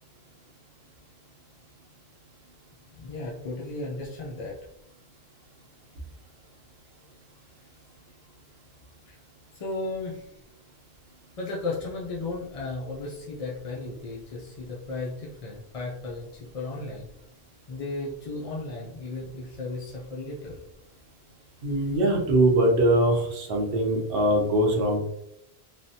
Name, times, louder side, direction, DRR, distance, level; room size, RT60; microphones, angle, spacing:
voice 1, 2.9-4.6 9.1-9.2 9.5-10.3 11.4-17.1 17.7-20.6, left 2 dB, 50° left, -5 dB, 0.4 m, -35 dB
voice 2, 21.6-25.0, right 1 dB, 65° right, 1 dB, 0.8 m, -22 dB
3.2 x 2.1 x 2.7 m, 0.80 s
omnidirectional pair, 1.1 m